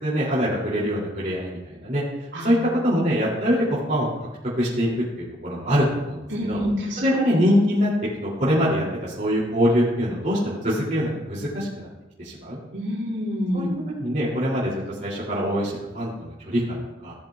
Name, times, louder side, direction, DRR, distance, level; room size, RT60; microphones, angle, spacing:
voice 1, 0.0-2.0 2.4-2.5 2.8-4.1 4.6-4.9 5.4-6.2 6.5-6.6 7.0-7.9 8.2-11.9 12.2-12.6 13.5-13.6 14.0-17.1, equal, 40° right, -7 dB, 2.8 m, -23 dB
voice 2, 2.3-2.6 6.3-7.0 12.7-13.7, equal, 70° right, -5 dB, 3.7 m, -27 dB
17.0 x 7.7 x 2.3 m, 1.0 s
head